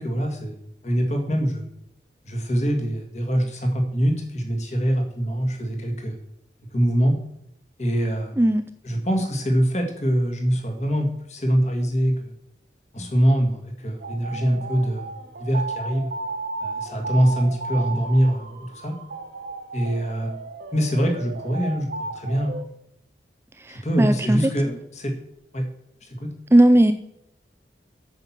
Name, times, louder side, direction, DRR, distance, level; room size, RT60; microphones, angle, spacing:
voice 1, 0.0-1.7 2.3-6.2 6.7-7.1 7.8-8.4 8.8-12.3 12.9-15.1 15.4-16.1 16.6-19.0 19.7-20.4 20.7-22.6 23.7-25.1 25.5-25.6 26.0-26.3, equal, 40° left, 3 dB, 2.0 m, -24 dB
sound 1, 14.0-22.6, right 3 dB, 75° right, 1.3 m, -34 dB
voice 2, 23.6-24.4 26.5-26.9, right 1 dB, 15° right, 10 dB, 0.3 m, -17 dB
9.0 x 5.8 x 7.3 m, 0.76 s
head